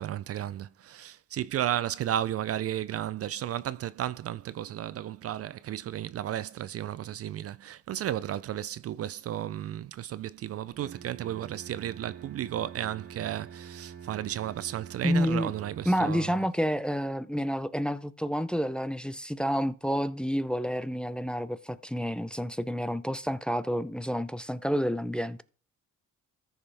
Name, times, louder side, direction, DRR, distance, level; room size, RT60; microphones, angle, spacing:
voice 1, 0.0-16.4, right 11 dB, 50° right, 0.4 m, -33 dB
Bowed string instrument, 10.8-16.6, right 8 dB, 35° right, 1.4 m, -46 dB
voice 2, 15.0-15.5 15.9-25.4, equal, 5° left, 0.5 m, -29 dB
14.0 x 5.6 x 3.4 m
cardioid pair, 90°, 30 cm